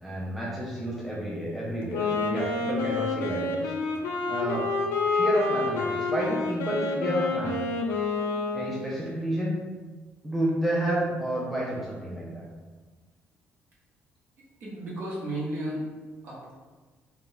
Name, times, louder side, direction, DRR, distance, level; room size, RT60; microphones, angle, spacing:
voice 1, 0.0-3.7 4.3-4.7 5.0-7.6 8.5-9.6 10.2-12.4, right 1 dB, ahead, -6 dB, 0.4 m, -30 dB
Wind instrument woodwind instrument, 1.8-9.0, left 3 dB, 85° left, 0.4 m, -28 dB
voice 2, 14.6-15.9 16.2-16.6, right 1 dB, 50° right, -6 dB, 0.9 m, -33 dB
2.3 x 2.1 x 3.7 m, 1.3 s
cardioid pair, 160°, 4 cm